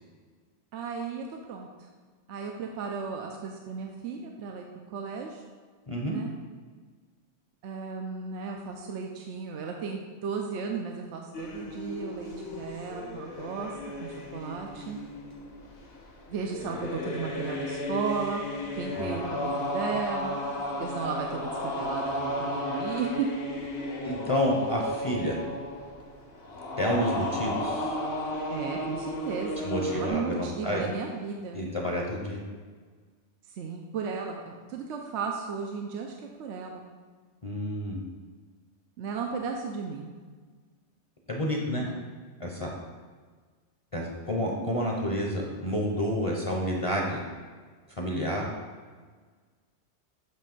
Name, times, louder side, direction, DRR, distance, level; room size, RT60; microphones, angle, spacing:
voice 1, 0.7-1.7 2.3-5.4 6.1-6.3 7.6-13.7 14.0-15.0 16.3-20.4 20.8-23.3 28.5-31.7 33.5-36.1 36.4-36.8 39.0-40.1 41.8-42.0, right 5 dB, 75° right, 1 dB, 0.9 m, -35 dB
voice 2, 5.9-6.2 19.0-19.1 24.0-25.4 26.8-28.0 29.6-30.8 31.5-32.4 37.4-38.0 41.3-41.9 42.4-42.7 43.9-47.2 48.0-48.5, equal, 30° left, -1 dB, 0.8 m, -29 dB
sound 1, 11.3-30.1, left 1 dB, 55° left, 1.1 m, -34 dB
7.6 x 3.2 x 5.3 m, 1.5 s
omnidirectional pair, 1.2 m